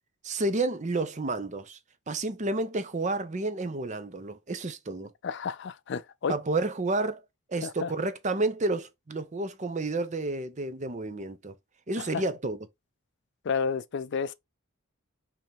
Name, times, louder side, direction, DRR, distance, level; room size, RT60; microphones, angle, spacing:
voice 1, 0.2-1.8 2.1-5.1 6.3-7.2 7.5-11.5 11.9-12.6, right 2 dB, 35° right, 0.6 m, -30 dB
voice 2, 5.2-6.3 7.6-7.9 12.0-12.2 13.4-14.3, left 6 dB, 55° left, 0.4 m, -31 dB
5.3 x 2.9 x 3.4 m
head